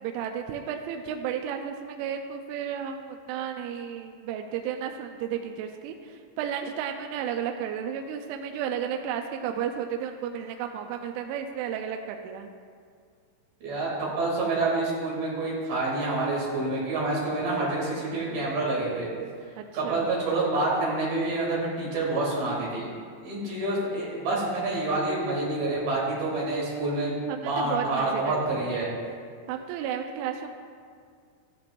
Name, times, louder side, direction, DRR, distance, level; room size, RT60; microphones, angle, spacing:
voice 1, 0.0-12.5 19.6-20.1 27.3-28.5 29.5-30.5, right 8 dB, 85° right, 4 dB, 3.0 m, -33 dB
voice 2, 13.6-19.1 19.7-22.9 23.2-27.1 27.4-28.9, right 2 dB, 55° right, -5 dB, 4.2 m, -27 dB
14.0 x 12.5 x 2.6 m, 2.1 s
omnidirectional pair, 5.5 m